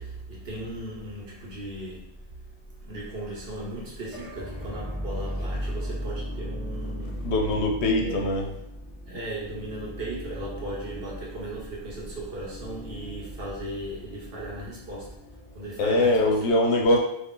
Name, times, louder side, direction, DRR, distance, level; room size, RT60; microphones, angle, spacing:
voice 1, 0.0-2.0 2.8-7.2 8.0-8.3 9.1-15.1 15.5-16.3, right 1 dB, 60° right, -5 dB, 1.1 m, -37 dB
sound 1, 4.1-16.0, equal, ahead, 0.4 m, -37 dB
voice 2, 7.2-8.5 15.8-17.0, left 1 dB, 75° left, 1 dB, 0.8 m, -22 dB
2.4 x 2.4 x 3.6 m, 0.80 s
omnidirectional pair, 1.2 m